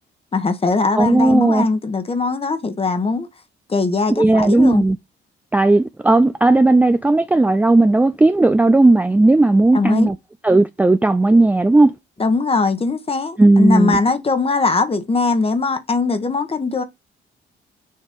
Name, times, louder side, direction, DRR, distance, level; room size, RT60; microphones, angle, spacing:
voice 1, 0.3-3.3 3.7-4.8 9.7-10.1 12.2-16.8, left 3 dB, 30° left, 1.2 m, -20 dB
voice 2, 1.0-1.7 4.2-5.0 5.5-10.2 10.4-11.9 13.4-14.0, right 2 dB, 10° right, 0.4 m, -14 dB
6.6 x 3.0 x 5.2 m
cardioid pair, 90°, 20 cm